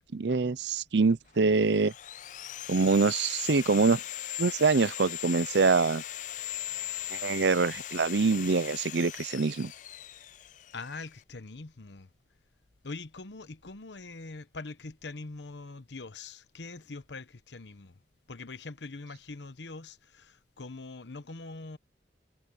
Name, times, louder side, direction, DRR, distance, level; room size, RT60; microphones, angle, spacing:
voice 1, 0.0-1.9 2.7-4.0 4.4-6.0 7.1-9.7, right 4 dB, 75° right, 0.6 m, -25 dB
Sawing, 1.4-11.2, left 12 dB, 45° left, 0.4 m, -39 dB
voice 2, 10.7-12.1 12.8-18.0 18.3-21.8, left 3 dB, 80° left, 1.0 m, -43 dB
head